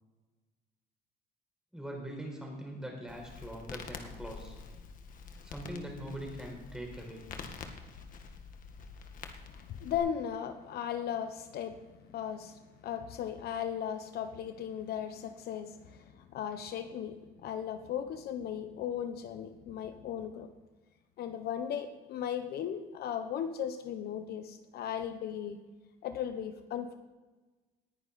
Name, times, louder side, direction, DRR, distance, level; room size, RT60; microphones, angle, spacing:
voice 1, 1.7-4.5 5.4-7.2, right 1 dB, 5° right, 0 dB, 4.8 m, -42 dB
Crackle, 3.1-10.0, left 5 dB, 55° left, 1.7 m, -47 dB
voice 2, 9.5-20.5 21.2-25.6 26.0-27.0, left 9 dB, 70° left, 8 dB, 1.1 m, -37 dB
19.5 x 10.0 x 4.3 m, 1.2 s
cardioid pair, 110°, 17 cm